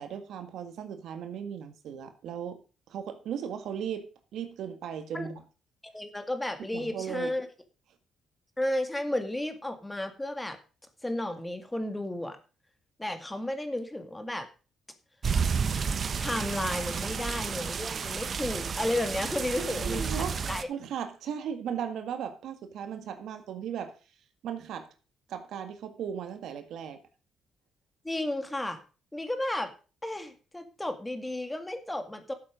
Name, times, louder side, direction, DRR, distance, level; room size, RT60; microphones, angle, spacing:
voice 1, 0.0-2.6 2.9-5.4 6.7-7.3 17.0-17.1 19.5-20.4 20.7-23.9 24.4-24.9 25.3-27.0, right 8 dB, 75° right, 8 dB, 1.8 m, -37 dB
voice 2, 5.8-7.5 8.6-10.6 11.0-12.4 13.0-14.5 16.2-20.7 28.0-28.8 29.1-29.7 30.0-32.3, left 1 dB, 10° left, 7 dB, 2.0 m, -33 dB
sound 1, 15.2-20.6, right 6 dB, 45° right, 1.0 m, -31 dB
12.5 x 7.7 x 5.1 m, 0.35 s
cardioid pair, 90°, 0 cm